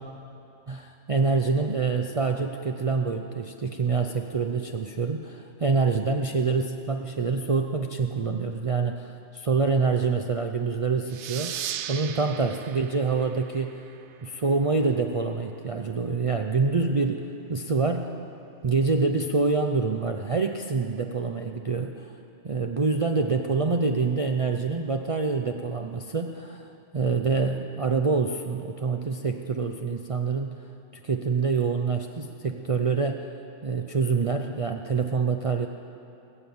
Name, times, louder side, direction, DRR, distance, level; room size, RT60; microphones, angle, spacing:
voice 1, 0.7-13.8 14.2-18.1 18.6-22.1 22.4-30.7 30.9-33.2 33.6-35.7, right 4 dB, 45° right, 4 dB, 0.4 m, -26 dB
sound 1, 11.1-14.3, right 10 dB, 75° right, 0.9 m, -37 dB
21.0 x 7.7 x 7.0 m, 2.9 s
omnidirectional pair, 1.2 m